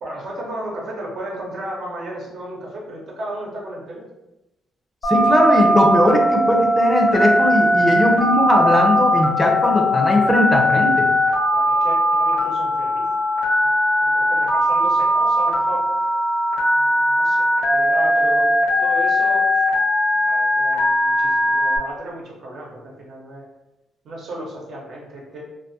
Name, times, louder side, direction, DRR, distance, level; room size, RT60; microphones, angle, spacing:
voice 1, 0.0-4.0 11.5-13.1 13.6-13.7 14.0-15.9 16.7-18.5 18.8-19.7 20.2-23.4 24.0-25.4, right 1 dB, 65° right, -3 dB, 0.8 m, -34 dB
Telephone, 5.0-21.8, equal, 75° left, 0.9 m, -19 dB
voice 2, 5.0-11.1, left 1 dB, 15° left, 0 dB, 0.5 m, -19 dB
2.3 x 2.2 x 2.7 m, 0.95 s
cardioid pair, 80°, 0 cm